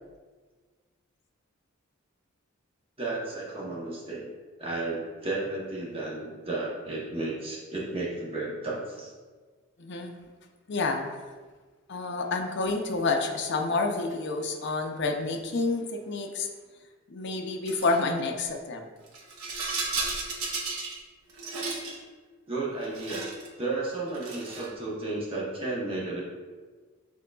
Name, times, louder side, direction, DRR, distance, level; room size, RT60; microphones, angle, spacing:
voice 1, 3.0-4.2 4.6-9.1 22.5-23.2 23.6-26.2, right 2 dB, 25° right, -4 dB, 0.9 m, -33 dB
voice 2, 9.8-10.1 10.7-11.0 11.9-16.5 17.1-18.9, left 3 dB, 55° left, 3 dB, 0.5 m, -29 dB
Rattle, 17.6-18.0 19.1-21.0 21.3-22.0 22.8-23.5 24.1-24.7, right 3 dB, 90° right, 0.8 m, -34 dB
6.1 x 3.7 x 2.3 m, 1.4 s
head